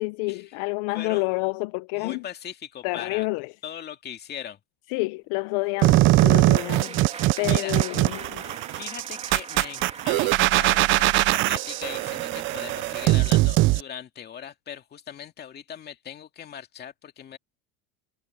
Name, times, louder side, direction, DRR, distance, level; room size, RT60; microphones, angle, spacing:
voice 1, 0.0-2.2 2.8-3.5 4.9-7.0 7.4-8.5, left 25 dB, 65° left, 0.6 m, -29 dB
voice 2, 2.0-3.3 3.6-4.6 7.4-7.7 8.7-17.4, left 9 dB, 30° left, 2.2 m, -39 dB
sound 1, 5.5-13.4, right 5 dB, 20° right, 2.9 m, -42 dB
sound 2, 5.8-13.8, right 18 dB, 40° right, 0.4 m, -21 dB
cardioid pair, 145°, 34 cm